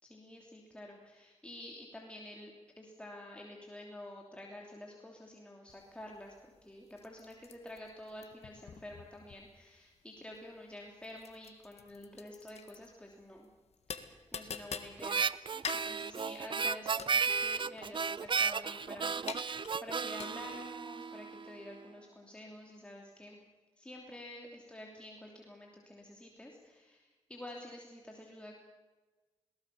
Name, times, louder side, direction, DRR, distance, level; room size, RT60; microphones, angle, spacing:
voice 1, 0.1-6.3 6.6-13.5 13.9-23.4 23.8-28.6, left 1 dB, 10° left, -1 dB, 3.0 m, -49 dB
sound 1, 5.7-20.7, left 6 dB, 65° left, 1.7 m, -47 dB
Harmonica, 15.0-21.5, right 5 dB, 45° right, 0.7 m, -34 dB
21.5 x 19.0 x 6.9 m, 1.3 s
cardioid pair, 75°, 12 cm